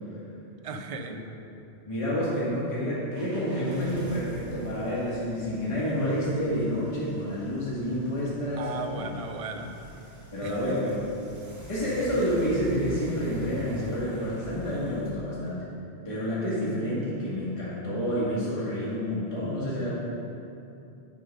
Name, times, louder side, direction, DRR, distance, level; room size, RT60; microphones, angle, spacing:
voice 1, 0.6-1.2 8.6-9.7 10.4-10.7, right 3 dB, 50° right, 6 dB, 0.4 m, -36 dB
voice 2, 1.8-9.1 10.3-10.9 11.7-15.6 16.0-19.9, equal, 30° left, -9 dB, 1.6 m, -29 dB
sound 1, 3.1-15.1, equal, 15° right, 1.0 m, -43 dB
8.6 x 3.8 x 5.3 m, 2.7 s
omnidirectional pair, 1.1 m